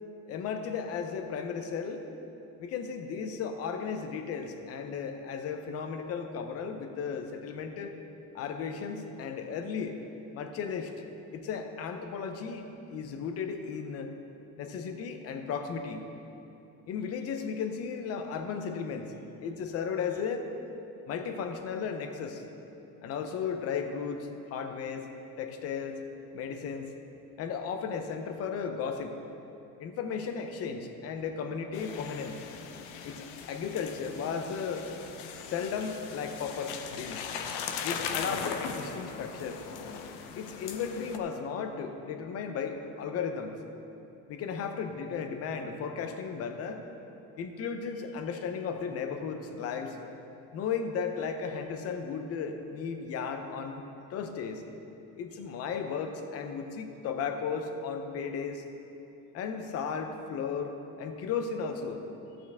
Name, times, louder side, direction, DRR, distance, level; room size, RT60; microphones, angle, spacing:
voice 1, 0.3-2.0 2.6-7.9 8.3-10.0 10.3-10.9 11.3-14.1 14.6-16.1 16.9-19.1 19.4-20.5 21.1-22.4 23.0-25.1 25.4-26.0 26.3-26.9 27.4-29.2 29.8-32.4 33.0-34.9 35.4-37.3 37.8-39.6 40.3-43.6 44.3-46.8 47.4-50.0 50.5-53.8 54.1-54.6 55.2-58.6 59.3-62.0, left 6 dB, 40° left, 6 dB, 0.8 m, -35 dB
sound 1, 31.7-41.2, left 6 dB, 85° left, 0.9 m, -39 dB
14.0 x 8.9 x 3.6 m, 2.9 s
cardioid pair, 160°, 36 cm